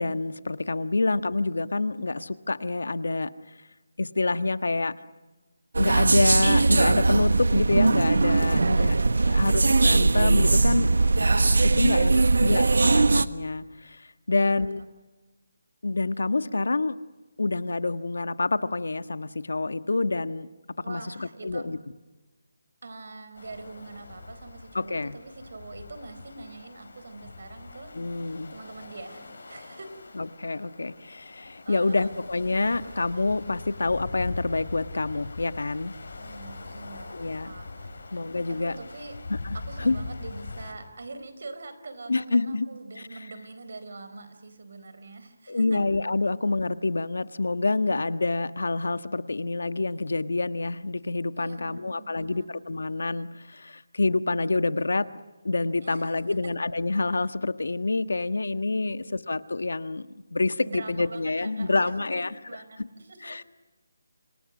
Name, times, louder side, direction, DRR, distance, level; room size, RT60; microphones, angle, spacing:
voice 1, 0.0-3.3 4.0-4.9 5.8-8.9 9.3-10.9 11.6-14.8 15.8-17.0 17.4-20.5 20.9-21.8 24.7-25.1 27.9-28.5 30.1-35.9 37.1-37.5 38.1-38.8 39.4-40.0 42.1-42.7 43.0-43.1 45.5-55.1 55.4-62.3 63.2-63.4, left 3 dB, 85° left, 11 dB, 1.4 m, -27 dB
sound 1, 5.7-13.3, right 3 dB, 85° right, 1.3 m, -20 dB
voice 2, 8.5-9.6 14.3-14.7 20.8-21.7 22.8-29.9 31.6-32.1 32.7-32.8 36.1-38.0 38.4-39.2 39.5-45.8 46.2-46.3 51.4-52.5 55.8-56.5 58.8-58.9 60.6-63.4, right 3 dB, 55° right, 10 dB, 4.5 m, -43 dB
sound 2, 23.3-40.7, left 3 dB, 65° left, 7.0 m, -42 dB
29.5 x 27.5 x 6.3 m, 1.2 s
hypercardioid pair, 175°, 0 cm